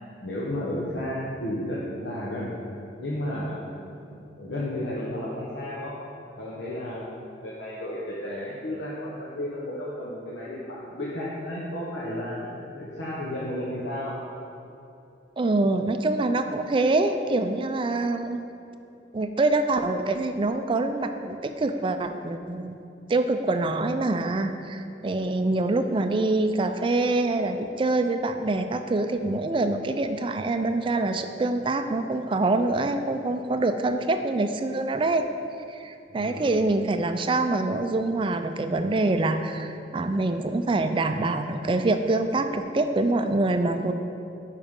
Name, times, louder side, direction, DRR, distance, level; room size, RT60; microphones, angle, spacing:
voice 1, 0.2-2.5 3.0-3.7 4.0-5.9 6.4-14.1 36.1-36.6, left 1 dB, 85° left, -7 dB, 1.0 m, -33 dB
voice 2, 15.4-18.4 19.1-22.8 23.1-35.3 35.7-43.9, right 2 dB, 30° right, 8 dB, 0.3 m, -25 dB
9.9 x 4.9 x 3.6 m, 2.6 s
head